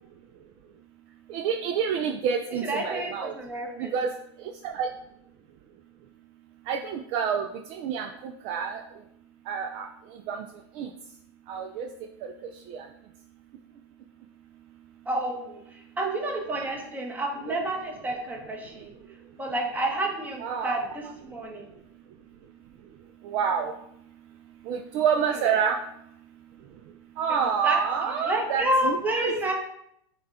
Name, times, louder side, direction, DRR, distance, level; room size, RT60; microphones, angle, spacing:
voice 1, 1.3-3.3 3.8-4.1 4.6-4.9 6.7-8.8 9.5-9.9 10.3-10.4 10.8-10.9 11.5-11.9 12.7-12.9 20.4-20.8 23.2-23.7 24.7-25.8 27.2-29.3, right 7 dB, 45° right, 5 dB, 0.3 m, -28 dB
voice 2, 2.6-4.0 15.0-18.9 19.4-21.7 25.3-25.7 27.3-29.6, right 1 dB, 10° right, 0 dB, 0.9 m, -30 dB
5.4 x 2.3 x 3.6 m, 0.74 s
supercardioid pair, 125°, 14 cm